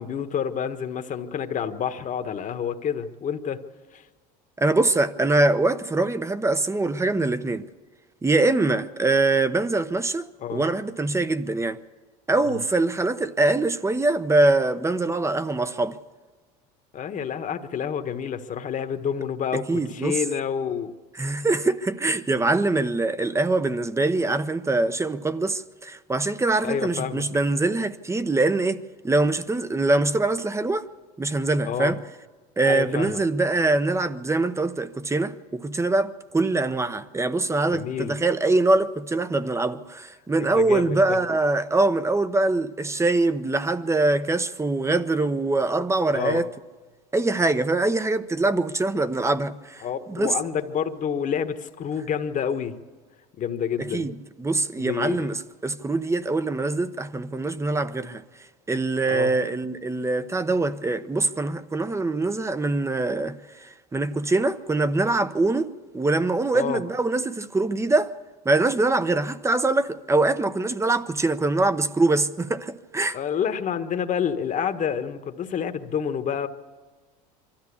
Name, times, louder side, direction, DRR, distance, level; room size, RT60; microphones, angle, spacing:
voice 1, 0.0-3.6 3.9-4.0 10.4-10.6 12.4-12.6 16.9-20.9 26.6-27.2 31.7-32.0 32.7-33.2 37.7-38.2 40.4-41.2 46.1-46.4 49.8-52.7 53.4-54.1 54.8-55.3 59.1-59.3 66.5-66.8 73.1-76.5, left 7 dB, 40° left, 1.4 m, -28 dB
voice 2, 4.6-7.7 8.2-11.8 12.3-16.0 19.5-20.2 21.1-30.9 31.2-32.0 32.6-46.5 47.1-49.8 50.1-50.3 53.8-58.2 58.7-68.2 68.4-73.2, right 2 dB, 15° right, 0.9 m, -23 dB
24.0 x 13.5 x 8.5 m
hypercardioid pair, 85°, 20 cm